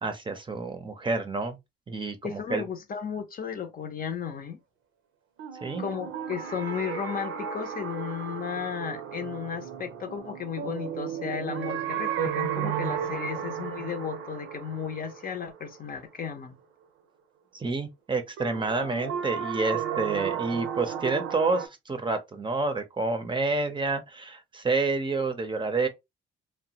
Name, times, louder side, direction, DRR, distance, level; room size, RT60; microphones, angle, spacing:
voice 1, 0.0-1.6 1.9-2.6 5.6-5.8 17.5-25.9, right 3 dB, 25° right, 0.6 m, -29 dB
voice 2, 2.2-4.6 5.8-16.6, left 7 dB, 45° left, 0.6 m, -34 dB
sound 1, 5.4-16.3 18.4-21.7, right 9 dB, 85° right, 0.6 m, -34 dB
2.9 x 2.1 x 2.8 m
cardioid pair, 90°, 20 cm